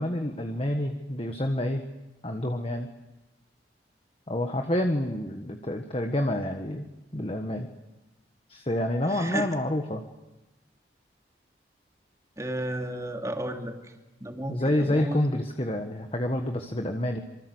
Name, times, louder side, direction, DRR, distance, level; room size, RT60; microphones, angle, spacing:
voice 1, 0.0-1.8 2.2-2.9 4.3-6.9 7.1-7.7 8.5-10.0 14.5-17.2, left 1 dB, 30° left, 5 dB, 1.5 m, -28 dB
voice 2, 9.0-9.5 12.4-13.9 14.2-15.3, right 1 dB, 15° right, 3 dB, 2.9 m, -33 dB
26.5 x 24.5 x 8.1 m, 1.0 s
head